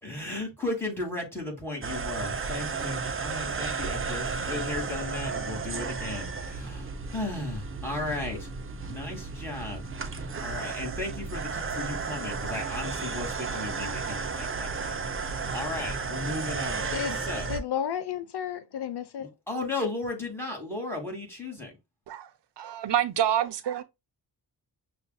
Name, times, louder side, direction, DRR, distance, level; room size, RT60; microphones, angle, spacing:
voice 1, 0.0-8.5 8.8-17.5 19.2-21.7, left 2 dB, 5° left, 2.3 m, -35 dB
sound 1, 1.8-17.6, right 4 dB, 30° right, 0.6 m, -33 dB
voice 2, 16.9-17.2 17.5-19.3, left 8 dB, 75° left, 0.6 m, -32 dB
voice 3, 22.6-23.8, right 10 dB, 85° right, 0.6 m, -27 dB
6.4 x 2.6 x 2.2 m
wide cardioid pair, 95°, 41 cm